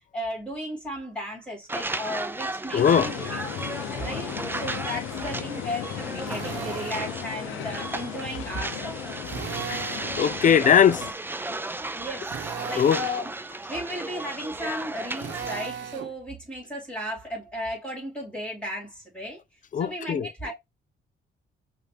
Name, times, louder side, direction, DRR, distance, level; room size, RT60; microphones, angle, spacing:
voice 1, 0.1-3.5 4.0-9.0 11.9-19.4 19.8-20.6, equal, 5° left, 2.9 m, -35 dB
sound 1, 1.7-15.7, right 2 dB, 10° right, 0.5 m, -35 dB
sound 2, 2.7-11.1, left 11 dB, 85° left, 0.6 m, -36 dB
voice 2, 2.7-3.1 9.7-11.0 12.8-13.0 19.7-20.3, left 8 dB, 40° left, 0.4 m, -20 dB
Drill, 6.3-7.1 9.2-10.2 12.2-13.1 15.2-16.1, right 8 dB, 70° right, 0.9 m, -36 dB
5.6 x 2.6 x 3.4 m
cardioid pair, 90°, 20 cm